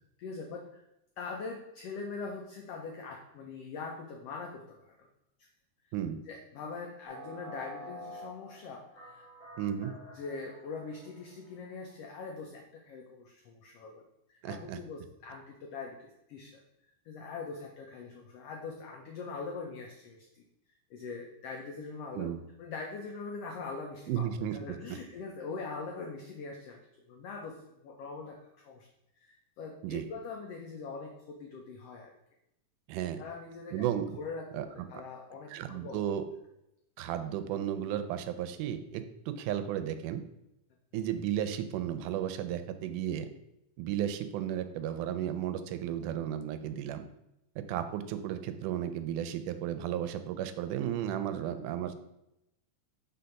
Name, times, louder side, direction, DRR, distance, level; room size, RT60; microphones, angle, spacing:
voice 1, 0.2-0.8 1.2-5.0 6.3-9.3 10.1-16.6 17.0-20.4 20.9-28.9 29.2-32.2 33.2-33.9 34.1-35.5 35.8-36.0 51.3-51.5, left 4 dB, 85° left, 2 dB, 1.3 m, -42 dB
voice 2, 5.9-6.2 9.6-9.9 14.4-14.8 22.1-22.4 24.1-24.6 29.8-30.0 32.9-33.2 33.7-34.1 34.5-34.7 35.5-36.2 37.0-40.2 40.9-43.3 43.8-47.0 47.7-51.9, right 10 dB, 85° right, 10 dB, 2.1 m, -34 dB
sound 1, 7.0-11.6, equal, 30° left, 1.6 m, -48 dB
5.2 x 4.0 x 5.7 m, 0.84 s
omnidirectional pair, 3.6 m